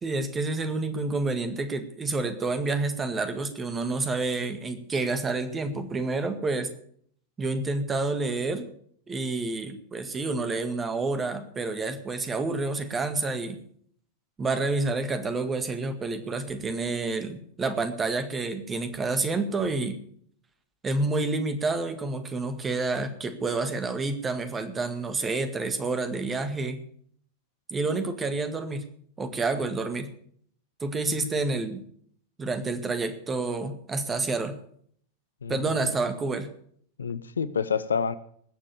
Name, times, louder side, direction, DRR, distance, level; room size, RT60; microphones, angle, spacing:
voice 1, 0.0-6.7 7.4-8.7 9.1-13.6 14.4-20.0 20.8-26.8 27.7-28.9 29.2-30.1 30.8-31.8 32.4-34.6 35.5-36.5, right 3 dB, 20° right, 9 dB, 1.8 m, -29 dB
voice 2, 35.4-35.9 37.0-38.1, left 6 dB, 70° left, 15 dB, 0.7 m, -28 dB
20.0 x 7.5 x 7.0 m, 0.62 s
figure-of-eight pair, 90°, 0 cm